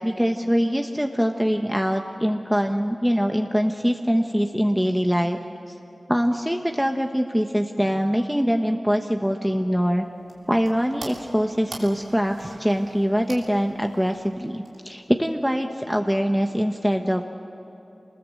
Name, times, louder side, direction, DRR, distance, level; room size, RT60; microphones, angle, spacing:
voice 1, 0.0-5.4 5.7-5.8 6.1-10.1 10.5-17.2, equal, 5° right, 4 dB, 1.1 m, -23 dB
sound 1, 9.8-15.2, right 2 dB, 90° right, 3.0 m, -44 dB
25.0 x 20.5 x 7.6 m, 3.0 s
cardioid pair, 45°, 0 cm